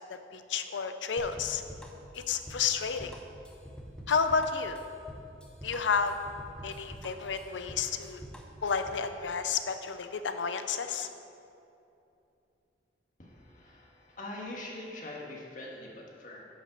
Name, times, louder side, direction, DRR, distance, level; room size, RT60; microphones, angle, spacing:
voice 1, 0.1-1.6 2.1-3.1 4.1-4.8 5.6-6.1 6.6-8.2 8.6-11.1, left 6 dB, 90° left, 9 dB, 0.6 m, -31 dB
sound 1, 1.2-9.1, equal, 5° left, 0.8 m, -46 dB
voice 2, 13.2-16.4, left 1 dB, 45° left, -2 dB, 1.6 m, -43 dB
10.0 x 5.1 x 6.4 m, 2.8 s
head